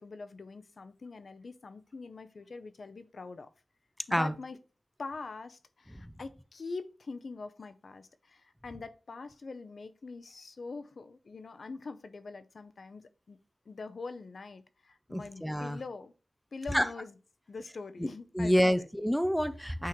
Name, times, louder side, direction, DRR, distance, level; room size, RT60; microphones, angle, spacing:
voice 1, 0.0-3.5 4.1-4.6 5.0-13.4 13.7-16.1 16.5-17.1 17.5-18.6, left 4 dB, 60° left, 0.6 m, -43 dB
voice 2, 15.1-15.8 16.7-16.9 18.0-18.1 18.3-19.9, equal, ahead, 0.4 m, -27 dB
8.5 x 3.7 x 3.0 m
wide cardioid pair, 110°, 0 cm